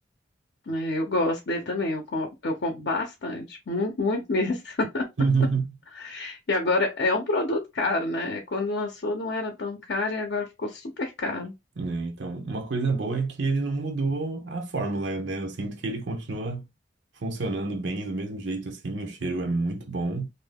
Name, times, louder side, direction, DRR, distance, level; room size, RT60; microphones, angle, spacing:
voice 1, 0.7-5.0 6.0-11.5, left 2 dB, 65° left, 0.6 m, -28 dB
voice 2, 5.2-5.7 11.8-16.6 17.2-20.3, right 3 dB, 85° right, 0.7 m, -28 dB
2.6 x 2.2 x 3.3 m
head